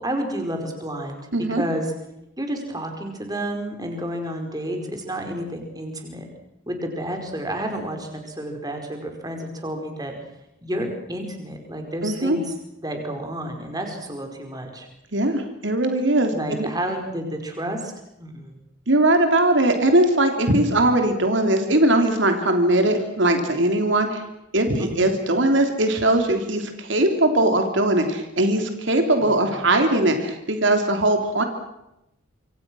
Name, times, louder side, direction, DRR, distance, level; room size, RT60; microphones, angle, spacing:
voice 1, 0.0-1.2 1.5-1.9 2.4-6.2 6.7-10.1 10.6-12.5 12.8-14.9 16.3-17.9 18.2-18.6 24.8-25.0 29.2-29.5, right 1 dB, 20° right, 4 dB, 4.9 m, -30 dB
voice 2, 1.3-1.6 12.0-12.4 15.1-16.7 18.9-24.2 24.5-31.4, right 1 dB, 65° right, 5 dB, 3.1 m, -20 dB
27.5 x 25.0 x 6.3 m, 0.88 s
head